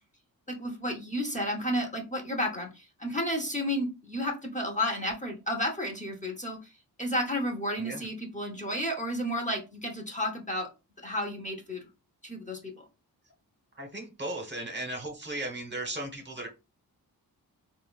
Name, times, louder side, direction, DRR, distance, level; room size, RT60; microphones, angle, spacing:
voice 1, 0.5-6.7 7.0-10.7 11.0-11.9 12.2-12.8, equal, 20° left, 1 dB, 0.7 m, -32 dB
voice 2, 13.7-16.5, right 1 dB, 30° right, 3 dB, 0.9 m, -36 dB
3.5 x 2.1 x 2.2 m, 0.28 s
cardioid pair, 70°, 39 cm